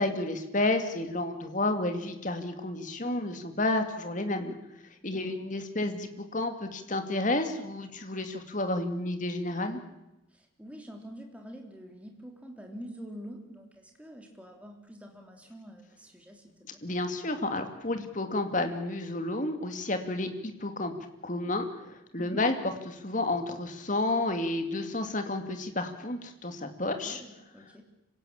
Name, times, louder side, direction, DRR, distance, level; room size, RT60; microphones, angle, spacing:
voice 1, 0.0-4.5 5.0-9.8 16.8-20.9 21.2-22.6 22.9-27.2, left 2 dB, 40° left, 7 dB, 2.5 m, -31 dB
voice 2, 10.3-16.8 22.2-22.5 27.0-27.8, equal, 5° right, 2 dB, 3.3 m, -46 dB
26.0 x 17.0 x 8.8 m, 0.93 s
head